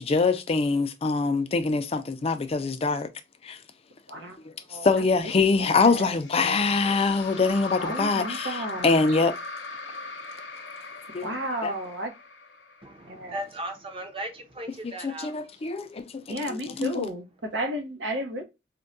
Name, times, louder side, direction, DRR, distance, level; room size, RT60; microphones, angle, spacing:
voice 1, 0.0-3.1 3.4-3.6 4.8-8.6 8.8-9.3 11.1-11.3 11.6-11.7 14.8-16.2 16.5-17.1, left 4 dB, 35° left, 0.4 m, -24 dB
voice 2, 4.1-4.4 4.7-4.9 5.2-5.3 5.6-6.1 7.8-9.2 11.2-12.1 13.1-13.4 16.3-18.4, right 1 dB, 85° right, 0.9 m, -33 dB
sound 1, 6.1-13.4, left 3 dB, 85° left, 0.7 m, -39 dB
voice 3, 12.8-15.4, right 1 dB, 30° right, 0.7 m, -37 dB
4.4 x 2.2 x 2.5 m
head